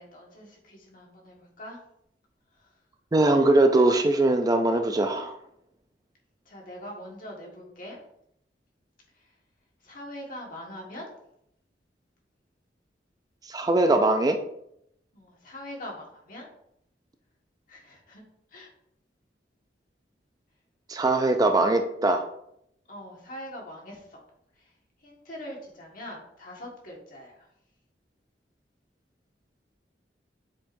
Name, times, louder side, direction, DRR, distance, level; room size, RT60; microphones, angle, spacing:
voice 1, 0.0-1.8 6.4-8.0 9.8-11.1 15.1-16.5 17.7-18.2 18.5-18.7 21.4-21.9 22.9-24.2 25.0-27.3, left 1 dB, 50° left, -1 dB, 1.7 m, -42 dB
voice 2, 3.1-5.4 13.5-14.4 20.9-22.2, right 2 dB, 20° right, 5 dB, 0.4 m, -21 dB
7.4 x 4.8 x 2.6 m, 0.74 s
head